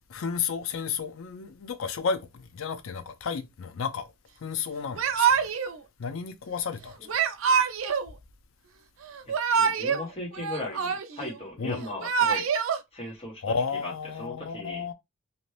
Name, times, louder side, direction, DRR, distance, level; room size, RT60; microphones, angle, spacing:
voice 1, 0.1-4.1 4.4-5.5 6.0-7.0 11.6-11.8 13.4-14.9, left 6 dB, 90° left, 0.5 m, -32 dB
Yell / Crying sobbing, 5.0-5.8 7.1-8.1 9.1-10.0 10.3-11.3 11.8-12.8, right 6 dB, 80° right, 0.5 m, -25 dB
voice 2, 9.2-12.5 12.9-13.5 13.8-14.8, left 2 dB, 30° left, 1.2 m, -38 dB
2.7 x 2.5 x 3.2 m
head